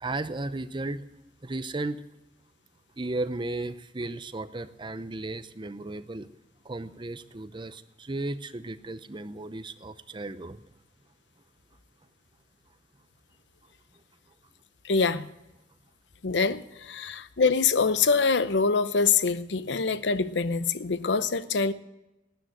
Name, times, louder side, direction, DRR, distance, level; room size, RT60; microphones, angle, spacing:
voice 1, 0.0-1.0 1.4-2.0 3.0-6.3 6.7-10.6, right 2 dB, 25° right, 0.7 m, -35 dB
voice 2, 14.8-15.3 16.2-21.7, left 5 dB, 70° left, 0.8 m, -25 dB
12.5 x 10.0 x 9.2 m
head